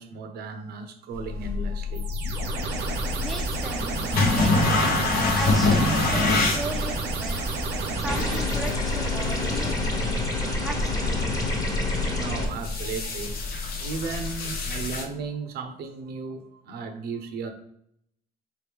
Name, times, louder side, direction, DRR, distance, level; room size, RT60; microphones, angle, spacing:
voice 1, 0.0-2.6 10.2-10.3 10.6-10.8 11.2-17.5, right 4 dB, 70° right, 0.7 m, -36 dB
sound 1, 1.1-15.0, left 3 dB, 60° left, 0.9 m, -27 dB
sound 2, 1.9-8.7, right 4 dB, 90° right, 1.1 m, -31 dB
voice 2, 3.2-4.9 5.3-7.5 7.9-10.2 10.6-10.9, right 2 dB, ahead, 0.5 m, -37 dB
sound 3, 8.1-12.5, left 2 dB, 20° left, 1.1 m, -27 dB
4.1 x 3.1 x 3.5 m
cardioid pair, 110°, 17 cm